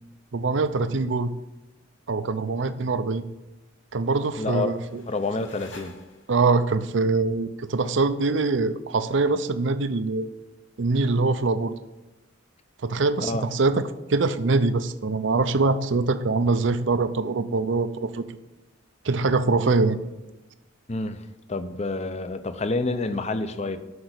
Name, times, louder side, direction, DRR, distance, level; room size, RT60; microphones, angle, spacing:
voice 1, 0.3-1.3 2.1-3.2 3.9-5.0 6.3-10.3 10.8-11.7 12.8-13.8 14.1-18.2 19.0-20.0, right 3 dB, 65° right, 12 dB, 0.6 m, -23 dB
sound 1, 4.2-6.6, left 3 dB, 65° left, 1.8 m, -49 dB
voice 2, 4.4-4.8 5.1-6.0 13.2-13.4 20.9-21.2 21.5-23.8, left 3 dB, 35° left, 10 dB, 0.7 m, -28 dB
8.0 x 6.1 x 8.0 m, 1.1 s
head